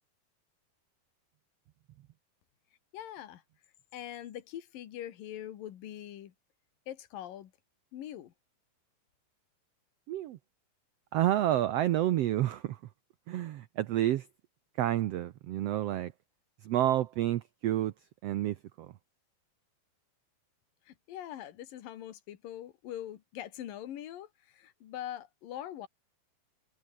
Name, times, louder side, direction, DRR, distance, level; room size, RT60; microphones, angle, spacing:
voice 1, 2.9-3.4 3.9-6.3 6.9-7.5 7.9-8.3 20.9-25.9, left 11 dB, 80° left, 3.4 m, -43 dB
voice 2, 10.1-10.4 11.1-12.8 13.3-14.3 14.8-16.1 16.6-17.9 18.2-18.9, right 13 dB, 85° right, 1.4 m, -29 dB
omnidirectional pair, 3.9 m